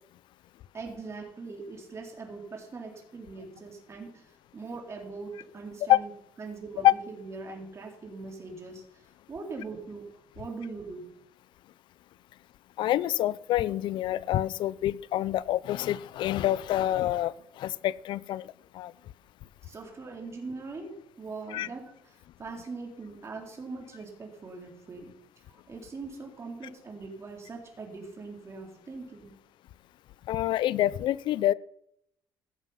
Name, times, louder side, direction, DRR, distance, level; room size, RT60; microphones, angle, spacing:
voice 1, 0.7-6.1 6.4-10.0 10.4-11.1 19.7-25.1 25.5-29.4, right 3 dB, 35° right, 1 dB, 3.9 m, -41 dB
voice 2, 12.8-18.5 18.7-18.9 21.5-21.7 30.3-31.5, left 13 dB, 70° left, 21 dB, 0.5 m, -26 dB
16.5 x 7.3 x 5.7 m, 0.75 s
cardioid pair, 100°, 8 cm